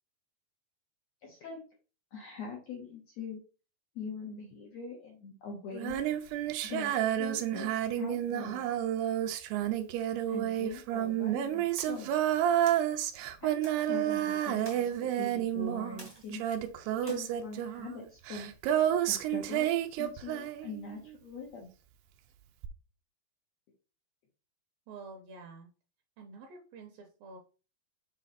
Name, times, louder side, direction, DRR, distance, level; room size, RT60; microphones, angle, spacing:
voice 1, 1.2-1.6 2.1-3.4 3.9-6.0 6.6-8.6 10.3-12.2 13.4-16.4 17.0-18.5 19.1-21.7, left 4 dB, 80° left, -1 dB, 1.5 m, -42 dB
Female singing, 5.7-21.1 22.6-22.7, right 11 dB, 90° right, 2.7 m, -30 dB
sound 1, 11.8-12.2 12.6-12.9 13.6-13.9 14.6-15.0 16.0-16.4 17.1-17.2, right 1 dB, 25° right, 0.7 m, -50 dB
voice 2, 24.9-25.7 26.2-27.4, right 4 dB, 75° right, 3 dB, 2.4 m, -48 dB
6.4 x 4.1 x 4.1 m, 0.36 s
omnidirectional pair, 4.6 m